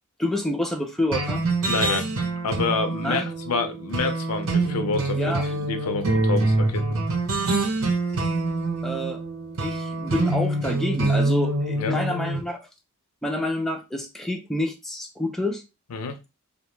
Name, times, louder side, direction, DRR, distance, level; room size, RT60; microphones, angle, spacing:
voice 1, 0.2-1.4 3.0-3.3 5.1-5.4 8.8-9.2 9.6-12.6 13.2-15.6, left 1 dB, ahead, 3 dB, 0.4 m, -28 dB
sound 1, 1.1-12.4, right 2 dB, 65° right, 0.8 m, -25 dB
voice 2, 1.7-2.1 2.4-6.8 11.8-12.0 15.9-16.2, left 4 dB, 70° left, 8 dB, 0.5 m, -28 dB
2.5 x 2.1 x 3.0 m, 0.25 s
head